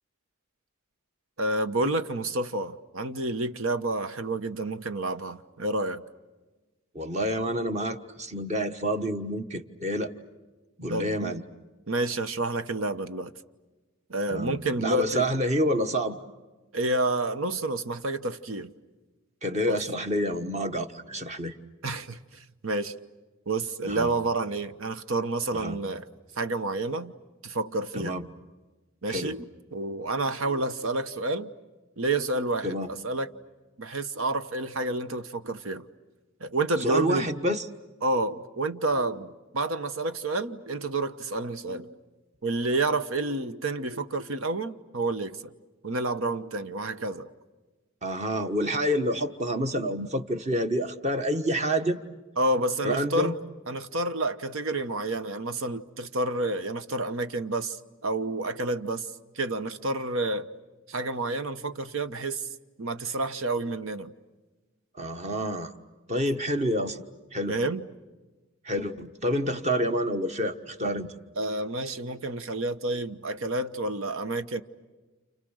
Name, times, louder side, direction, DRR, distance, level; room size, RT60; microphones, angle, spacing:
voice 1, 1.4-6.0 10.9-11.4 11.9-13.3 14.1-15.3 16.7-18.7 19.7-19.8 21.8-23.0 23.5-26.0 26.4-27.1 27.4-28.2 29.0-31.5 32.0-33.3 33.8-35.9 36.4-37.3 38.0-42.0 42.4-45.5 45.8-47.3 52.4-53.3 53.7-57.8 58.0-59.1 59.3-60.5 60.9-62.5 62.8-64.1 67.5-67.9 71.4-74.6, right 2 dB, 75° right, 1.1 m, -29 dB
voice 2, 6.9-10.1 10.8-11.4 14.3-16.2 19.4-21.5 23.8-24.1 25.5-25.8 27.9-28.2 29.1-29.4 32.6-32.9 36.8-37.6 48.0-52.0 52.8-53.3 65.0-65.7 66.1-67.0 67.3-67.6 68.6-71.1, equal, 30° right, 1.3 m, -28 dB
30.0 x 29.5 x 6.5 m
head